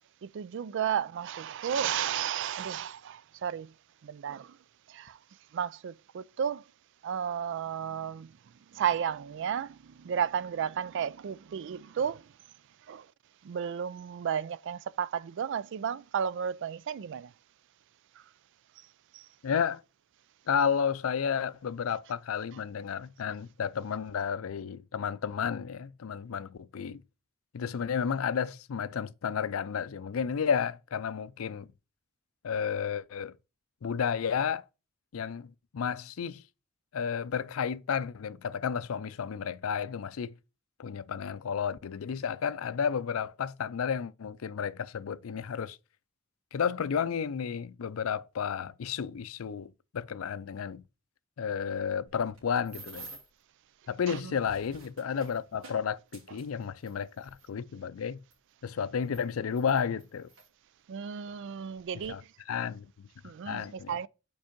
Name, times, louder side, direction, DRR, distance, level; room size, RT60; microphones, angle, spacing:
voice 1, 0.2-3.7 4.0-4.6 4.9-5.2 5.5-6.7 7.0-8.3 8.7-12.3 12.9-13.1 13.4-17.3 19.1-19.3 54.1-54.3 60.9-62.3 63.2-64.1, right 8 dB, 60° right, 0.4 m, -33 dB
voice 2, 19.4-19.8 20.5-27.0 27.5-31.7 32.4-33.3 33.8-34.6 35.1-36.4 36.9-40.3 40.8-45.8 46.5-50.8 51.4-53.2 53.9-58.2 58.6-60.3 62.1-62.2 62.5-62.9 63.5-63.9, left 7 dB, 85° left, 0.4 m, -32 dB
sound 1, 52.1-53.4 54.2-57.5 58.3-58.4 59.0-60.5 61.3-61.4 61.7-62.1, right 3 dB, 90° right, 3.0 m, -51 dB
5.2 x 4.7 x 5.1 m
head